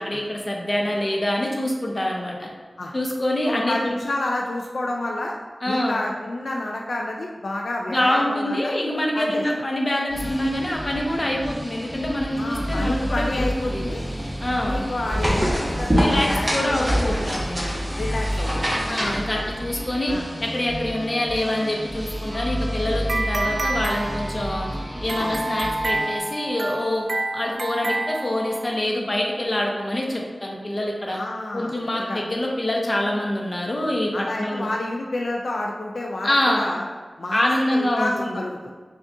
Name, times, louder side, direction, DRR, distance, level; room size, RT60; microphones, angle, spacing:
voice 1, 0.0-2.5 2.9-3.9 5.6-6.0 7.9-13.8 14.4-14.9 16.0-17.8 18.9-20.1 20.4-24.7 25.0-27.1 27.3-31.2 31.5-34.7 36.2-36.7 37.3-38.3, left 1 dB, 35° left, -1 dB, 0.8 m, -25 dB
voice 2, 3.5-5.4 5.7-8.7 9.1-9.4 12.3-14.0 14.6-17.3 18.0-18.7 19.3-19.4 20.1-20.2 25.2-25.4 31.1-31.7 32.1-32.2 34.1-36.8 37.2-38.7, left 2 dB, 80° left, 0 dB, 0.3 m, -29 dB
sound 1, 10.1-26.2, equal, ahead, 1.0 m, -31 dB
sound 2, 12.5-19.2, equal, 20° right, 1.2 m, -26 dB
sound 3, 22.3-28.8, right 2 dB, 65° right, 0.3 m, -29 dB
6.1 x 2.4 x 2.6 m, 1.4 s
wide cardioid pair, 75°, 0 cm